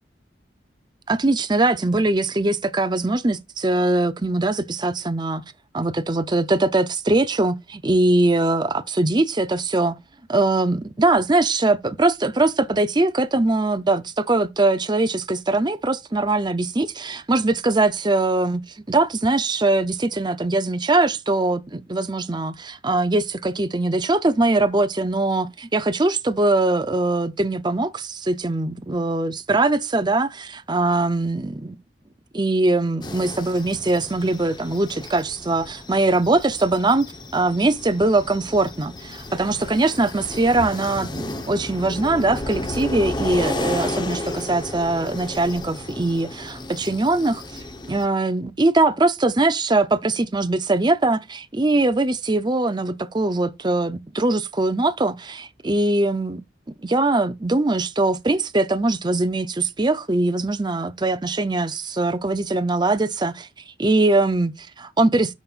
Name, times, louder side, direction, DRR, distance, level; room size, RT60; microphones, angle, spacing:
voice 1, 1.1-5.4 5.7-10.0 10.3-18.6 18.9-31.8 32.3-37.1 37.3-47.4 47.9-56.4 56.8-63.5 63.8-65.3, right 2 dB, 25° right, 0.6 m, -21 dB
sound 1, 33.0-48.1, left 1 dB, 25° left, 1.0 m, -33 dB
13.0 x 5.3 x 2.4 m
head